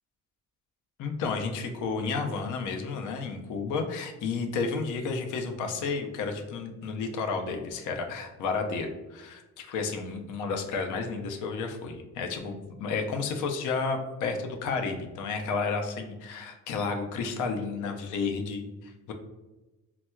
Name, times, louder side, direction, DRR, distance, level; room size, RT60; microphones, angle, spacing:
voice 1, 1.0-19.1, left 4 dB, 70° left, 4 dB, 0.6 m, -32 dB
4.2 x 2.0 x 2.2 m, 1.1 s
cardioid pair, 95°, 31 cm